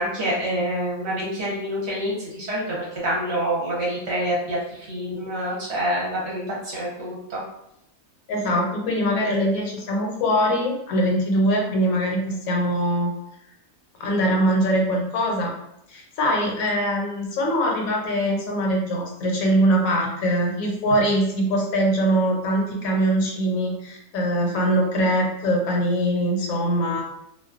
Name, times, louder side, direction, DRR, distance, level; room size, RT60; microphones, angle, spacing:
voice 1, 0.0-7.4, equal, 55° right, -5 dB, 0.9 m, -27 dB
voice 2, 8.3-13.1 14.0-15.5 15.9-27.0, equal, 75° left, 0 dB, 1.0 m, -22 dB
2.4 x 2.2 x 2.4 m, 0.77 s
omnidirectional pair, 1.5 m